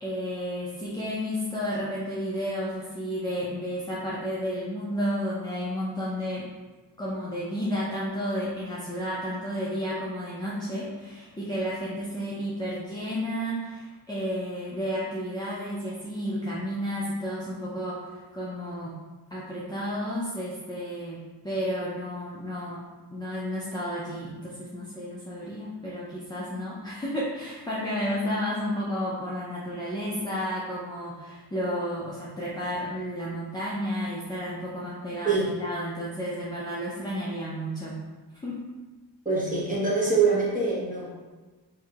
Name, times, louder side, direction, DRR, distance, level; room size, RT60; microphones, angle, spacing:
voice 1, 0.0-6.4 7.0-19.0 19.3-21.2 21.4-22.8 23.1-37.9 38.4-38.7, equal, 10° left, -7 dB, 0.5 m, -32 dB
voice 2, 39.2-41.1, right 4 dB, 20° right, -7 dB, 1.2 m, -24 dB
4.6 x 2.8 x 2.3 m, 1.3 s
cardioid pair, 110°, 43 cm